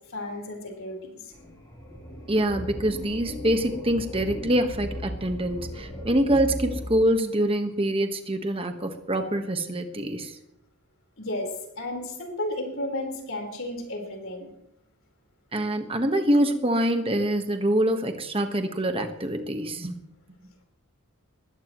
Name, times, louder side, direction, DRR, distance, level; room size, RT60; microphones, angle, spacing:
voice 1, 0.1-1.2 11.2-14.5, left 1 dB, 65° left, 1 dB, 4.5 m, -33 dB
sound 1, 1.3-7.1, left 1 dB, 15° left, 3.9 m, -37 dB
voice 2, 2.3-10.4 15.5-20.0, right 1 dB, 25° right, 6 dB, 1.4 m, -25 dB
21.0 x 16.5 x 3.2 m, 0.80 s
head